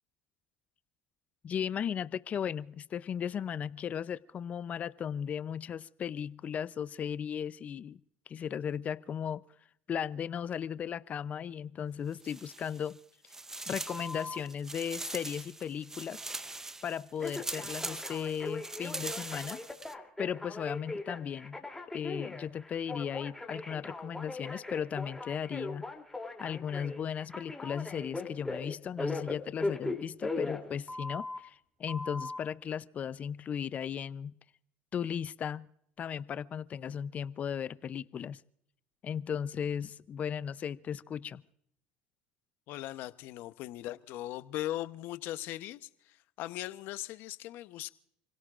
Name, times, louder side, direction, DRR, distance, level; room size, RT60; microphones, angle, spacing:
voice 1, 1.4-8.0 8.3-9.4 9.9-13.0 13.7-16.2 16.8-19.6 20.2-21.6 21.9-25.9 26.4-34.4 34.9-35.7 36.0-38.4 39.0-41.4, left 8 dB, 40° left, 0.6 m, -36 dB
sound 1, 12.1-13.0 13.3-19.9, right 2 dB, 10° right, 0.8 m, -42 dB
Telephone, 13.9-14.4 17.2-31.4 31.9-32.4, left 2 dB, 10° left, 3.1 m, -39 dB
voice 2, 42.7-47.9, left 15 dB, 65° left, 0.9 m, -39 dB
30.0 x 17.0 x 2.5 m
supercardioid pair, 90°, 4 cm